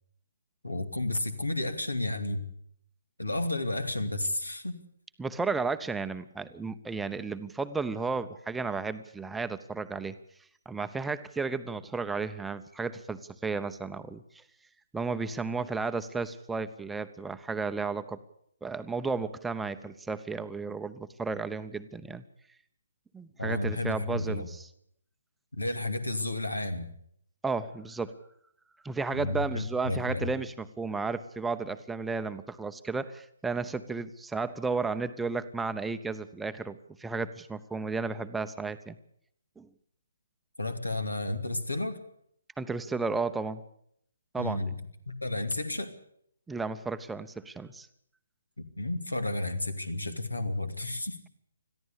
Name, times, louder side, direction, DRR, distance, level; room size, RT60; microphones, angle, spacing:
voice 1, 0.6-2.5 3.2-4.8 23.4-24.5 25.6-26.9 29.1-30.3 40.6-42.0 44.4-44.7 45.1-45.9 48.8-51.2, left 2 dB, 90° left, 9 dB, 2.6 m, -32 dB
voice 2, 5.2-10.2 10.7-14.2 14.9-18.2 18.6-22.2 23.1-24.7 27.4-28.1 28.8-39.0 39.6-39.7 42.6-43.6 44.3-44.7 46.5-47.9, right 4 dB, 5° right, 10 dB, 0.8 m, -33 dB
21.5 x 14.5 x 8.4 m, 0.69 s
figure-of-eight pair, 140°, 0 cm